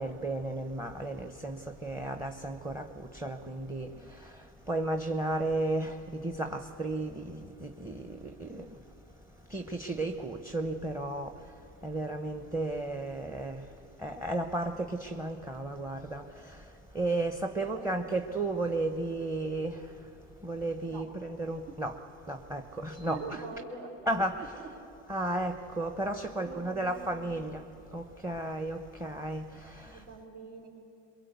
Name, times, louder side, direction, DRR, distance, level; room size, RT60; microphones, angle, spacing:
voice 1, 0.0-2.8 3.1-3.9 4.7-8.7 9.5-11.3 11.8-13.6 14.0-16.2 16.9-19.8 20.4-22.0 22.3-23.4 24.1-24.6 25.1-27.6 27.9-29.9, right 2 dB, 5° right, 6 dB, 0.9 m, -33 dB
voice 2, 17.6-18.3 20.9-21.0 23.1-23.9 24.4-24.5 26.4-27.5 29.8-30.7, right 3 dB, 80° right, -1 dB, 3.7 m, -44 dB
23.0 x 22.0 x 8.2 m, 2.8 s
hypercardioid pair, 95°, 38 cm